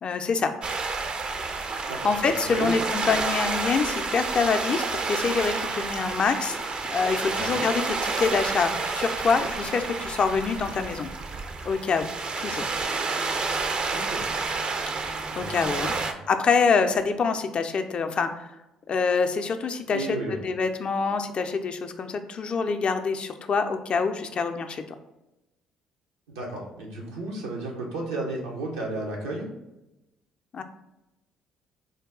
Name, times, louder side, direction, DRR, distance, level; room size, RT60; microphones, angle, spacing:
voice 1, 0.0-0.5 1.8-6.6 6.9-11.1 11.7-12.1 12.4-12.7 15.4-15.9 16.3-18.5 18.9-20.1 20.4-24.8 30.5-30.6, left 5 dB, 45° left, 8 dB, 0.4 m, -25 dB
sound 1, 0.6-16.1, right 4 dB, 45° right, 0.4 m, -30 dB
voice 2, 1.9-2.7 3.0-3.2 7.2-7.6 13.9-14.3 15.3-16.1 19.9-20.4 26.3-29.5, right 2 dB, 85° right, -2 dB, 0.8 m, -33 dB
3.8 x 2.2 x 3.6 m, 0.95 s
hypercardioid pair, 55°, 2 cm